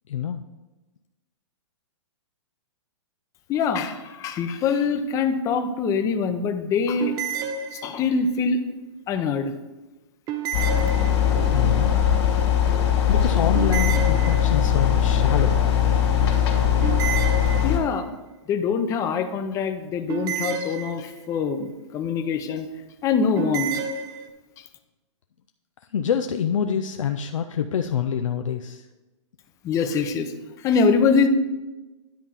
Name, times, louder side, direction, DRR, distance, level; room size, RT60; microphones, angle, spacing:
voice 1, 0.1-0.4 11.5-11.9 13.1-15.6 25.9-28.9, left 8 dB, 85° left, 6 dB, 0.5 m, -26 dB
voice 2, 3.5-7.2 7.7-8.6 9.1-9.5 17.6-18.1 18.5-22.7 23.0-23.8 29.6-30.3 30.6-31.3, left 5 dB, 20° left, 7 dB, 0.6 m, -24 dB
sound 1, 7.0-8.3 10.3-11.6 13.5-14.8 16.8-18.1 20.1-21.4 23.4-24.3, right 7 dB, 20° right, 0.6 m, -31 dB
sound 2, 10.5-17.8, left 9 dB, 55° left, 2.2 m, -20 dB
10.5 x 3.6 x 5.7 m, 1.1 s
hypercardioid pair, 145°, 16 cm